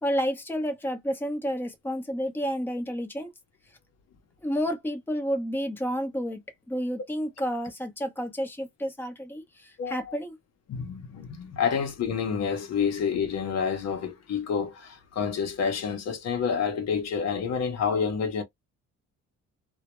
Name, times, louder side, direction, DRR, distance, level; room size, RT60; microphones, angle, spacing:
voice 1, 0.0-3.3 4.4-6.4 6.7-10.3, equal, 5° left, 0.8 m, -30 dB
voice 2, 9.8-10.1 10.7-18.4, left 6 dB, 60° left, 0.7 m, -28 dB
2.2 x 2.1 x 2.9 m
cardioid pair, 90°, 30 cm